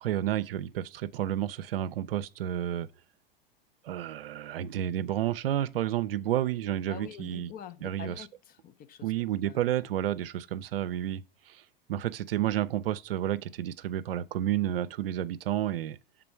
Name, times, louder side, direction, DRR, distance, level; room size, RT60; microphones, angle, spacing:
voice 1, 0.0-2.9 3.8-7.5 7.8-8.3 9.0-11.6 11.9-16.0, right 12 dB, 75° right, 0.5 m, -31 dB
voice 2, 6.9-9.6, left 9 dB, 30° left, 0.6 m, -46 dB
6.8 x 3.8 x 4.4 m
hypercardioid pair, 100°, 29 cm